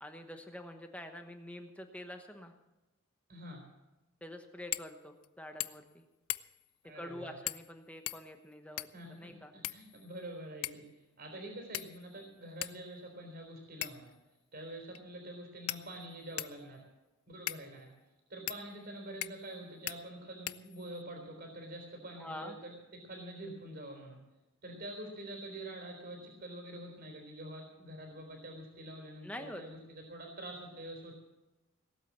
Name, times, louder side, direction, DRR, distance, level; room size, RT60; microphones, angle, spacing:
voice 1, 0.0-2.5 4.2-6.0 6.9-9.5 22.1-22.6 29.2-29.6, left 1 dB, 5° left, 5 dB, 1.0 m, -46 dB
voice 2, 3.3-3.6 6.8-7.4 8.9-10.8 11.2-14.1 14.5-16.8 17.3-17.9 18.3-22.7 23.1-24.2 24.6-31.2, right 1 dB, 50° right, 1 dB, 3.7 m, -46 dB
sound 1, 4.7-4.9 5.2-5.3 5.6-5.9 6.3-6.7 7.5-7.7 8.1-9.1 9.6-10.2 10.6-10.9 11.7-12.2 12.6-12.8 13.8-14.1 14.9-15.0 15.7-16.6 17.5-17.6 18.5-18.6 19.2-19.5 19.9-20.0 20.5-21.0, left 15 dB, 80° left, 0.5 m, -40 dB
18.5 x 8.4 x 7.2 m, 1.0 s
head